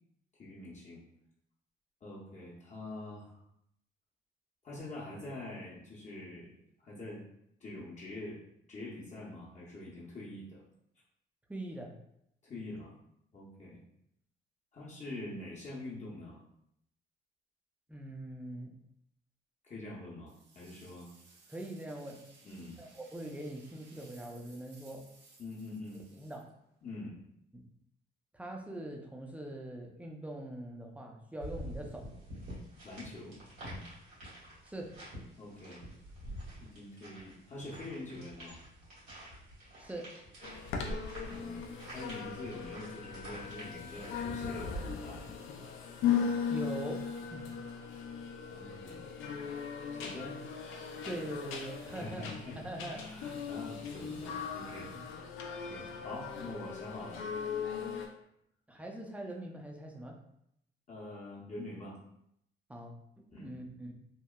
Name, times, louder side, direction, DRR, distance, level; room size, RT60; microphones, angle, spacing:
voice 1, 0.4-1.0 2.0-3.4 4.6-6.5 6.8-7.2 7.6-8.4 8.7-10.6 12.4-12.9 13.3-13.8 14.7-16.4 19.6-21.1 22.4-22.8 25.4-26.0 26.8-27.2 32.8-33.4 35.4-35.8 36.6-38.6 41.2-41.7 41.9-45.3 48.4-49.5 49.9-50.3 51.9-54.9 55.6-57.2 57.9-58.1 60.9-61.9 63.3-63.5, left 2 dB, 35° left, -6 dB, 0.7 m, -45 dB
voice 2, 11.5-11.9 17.9-18.7 21.5-22.2 22.8-25.1 26.2-26.4 27.5-27.6 28.3-32.1 34.6-34.9 39.8-40.2 46.5-47.5 51.0-53.0 54.0-54.2 54.8-55.1 58.7-60.2 62.7-63.9, right 1 dB, 5° right, 1 dB, 0.4 m, -42 dB
sound 1, 20.3-27.0, right 3 dB, 60° right, 0.5 m, -61 dB
sound 2, 31.4-45.4, equal, 90° right, 1.3 m, -47 dB
sound 3, 40.4-58.1, left 7 dB, 85° left, 0.4 m, -38 dB
2.9 x 2.0 x 2.2 m, 0.75 s
cardioid pair, 90°, 20 cm